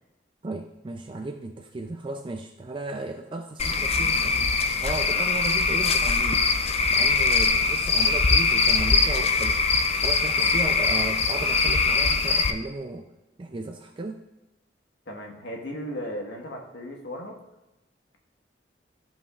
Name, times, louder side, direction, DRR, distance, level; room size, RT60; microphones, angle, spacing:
voice 1, 0.4-6.5 6.9-9.6 10.0-13.1 13.4-14.2, right 2 dB, 30° right, 4 dB, 0.4 m, -35 dB
Cricket / Frog, 3.6-12.5, left 4 dB, 35° left, 0.5 m, -22 dB
voice 2, 15.1-17.4, equal, 65° left, 0 dB, 1.4 m, -36 dB
15.5 x 5.4 x 2.4 m, 0.96 s
head